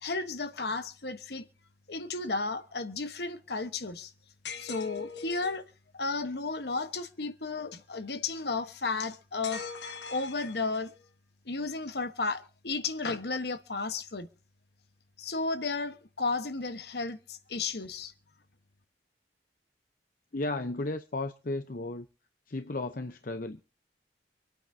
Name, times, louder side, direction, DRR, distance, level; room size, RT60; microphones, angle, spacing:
voice 1, 0.0-1.5 1.9-4.1 4.5-5.6 5.9-9.7 10.1-10.9 11.5-14.3 15.2-18.1, left 3 dB, 65° left, 1.2 m, -33 dB
sound 1, 4.4-5.6 9.4-11.0, left 5 dB, 90° left, 1.6 m, -41 dB
voice 2, 20.3-22.1 22.5-23.6, left 2 dB, 50° left, 0.8 m, -34 dB
26.5 x 9.0 x 2.8 m
head